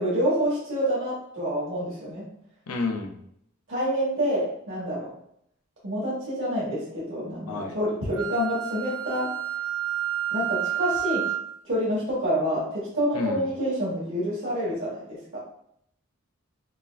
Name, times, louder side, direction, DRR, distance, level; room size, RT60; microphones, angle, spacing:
voice 1, 0.0-2.2 3.7-5.1 5.8-9.3 10.3-11.2 11.6-15.4, equal, 65° right, -7 dB, 1.4 m, -27 dB
voice 2, 2.7-3.2 7.5-7.8 13.1-13.5, left 3 dB, 85° left, 3 dB, 0.6 m, -30 dB
Wind instrument woodwind instrument, 8.2-11.5, right 11 dB, 85° right, 0.4 m, -30 dB
5.3 x 2.5 x 2.3 m, 0.71 s
head